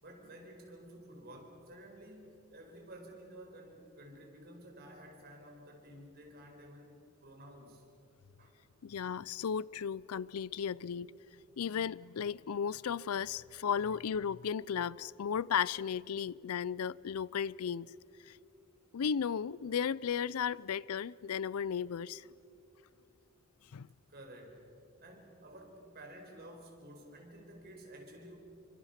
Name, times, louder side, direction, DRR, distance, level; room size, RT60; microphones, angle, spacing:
voice 1, 0.0-7.8 8.4-8.6 24.1-24.7 25.0-28.4, right 1 dB, 45° right, 4.7 m, -52 dB
voice 2, 8.8-11.1 11.6-17.9 18.3-18.4 18.9-22.3 23.7-23.9, left 7 dB, 85° left, 0.4 m, -35 dB
29.0 x 24.5 x 5.9 m
head